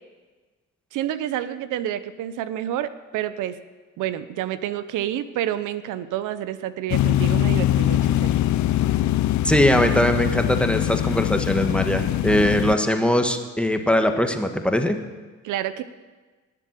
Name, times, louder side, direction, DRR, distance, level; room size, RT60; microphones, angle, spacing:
voice 1, 0.9-3.6 4.0-8.5 15.4-15.8, right 12 dB, 90° right, 13 dB, 0.7 m, -29 dB
sound 1, 6.9-12.8, left 13 dB, 70° left, 0.6 m, -22 dB
voice 2, 9.4-15.0, left 1 dB, 5° left, 5 dB, 1.4 m, -21 dB
19.0 x 7.7 x 7.5 m, 1.3 s
cardioid pair, 90°, 30 cm